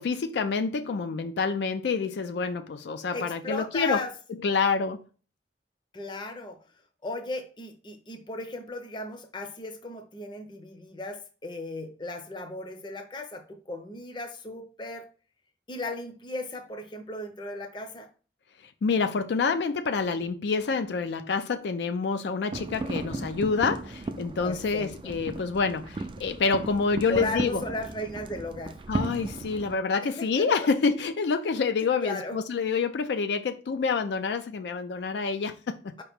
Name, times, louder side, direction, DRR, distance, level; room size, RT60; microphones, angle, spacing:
voice 1, 0.0-4.0 4.4-5.1 18.8-27.6 28.9-36.0, left 5 dB, 75° left, 0.4 m, -27 dB
voice 2, 3.1-4.1 5.9-6.6 7.0-15.1 15.7-18.1 24.4-25.1 27.1-28.8 30.0-30.5 32.0-32.4 36.0-36.1, left 2 dB, 25° left, 0.6 m, -36 dB
sound 1, 22.5-29.7, right 2 dB, 30° right, 0.3 m, -35 dB
4.7 x 2.9 x 3.4 m
head